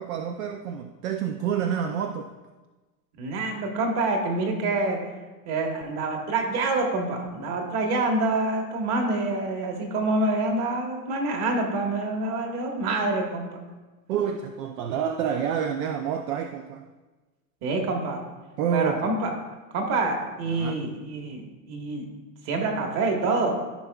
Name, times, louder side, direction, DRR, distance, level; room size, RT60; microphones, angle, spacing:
voice 1, 0.0-2.3 14.1-16.9 18.6-19.1 20.5-20.8, right 8 dB, 60° right, 6 dB, 0.6 m, -28 dB
voice 2, 3.2-5.0 5.5-13.5 17.6-18.2 18.7-19.3 19.7-22.0 22.4-23.5, right 2 dB, 30° right, 2 dB, 1.4 m, -26 dB
14.0 x 5.6 x 2.3 m, 1.2 s
supercardioid pair, 155°, 49 cm